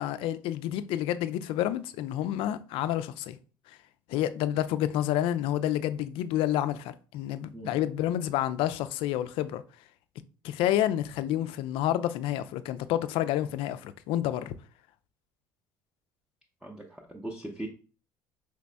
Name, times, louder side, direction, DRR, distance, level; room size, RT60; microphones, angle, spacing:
voice 1, 0.0-3.4 4.1-9.6 10.4-14.5, left 12 dB, 55° left, 0.4 m, -29 dB
voice 2, 16.6-17.7, right 1 dB, 5° right, 0.6 m, -39 dB
4.9 x 3.3 x 2.2 m
figure-of-eight pair, 60°, 11 cm